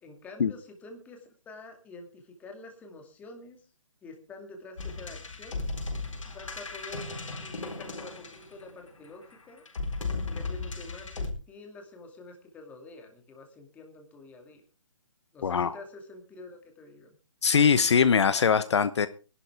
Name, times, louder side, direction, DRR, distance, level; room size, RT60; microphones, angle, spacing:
voice 1, 0.0-3.6 4.0-5.7 6.2-9.6 10.2-14.6 15.3-17.1, left 2 dB, 10° left, 3 dB, 2.3 m, -47 dB
sound 1, 4.8-8.8 9.7-11.3, left 3 dB, 75° left, 4.2 m, -35 dB
voice 2, 15.4-15.8 17.4-19.1, left 6 dB, 60° left, 14 dB, 0.9 m, -22 dB
21.0 x 11.5 x 3.5 m, 0.33 s
hypercardioid pair, 160°, 16 cm